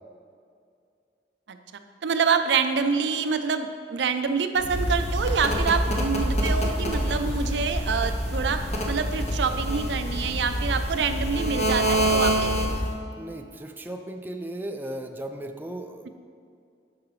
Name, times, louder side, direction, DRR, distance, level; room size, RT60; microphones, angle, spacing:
voice 1, 2.0-12.8, right 5 dB, 75° right, 8 dB, 0.5 m, -26 dB
sound 1, 4.6-13.0, equal, 40° left, 0.8 m, -26 dB
voice 2, 13.1-16.1, right 1 dB, 10° right, 5 dB, 0.3 m, -36 dB
11.5 x 4.7 x 3.2 m, 2.4 s
head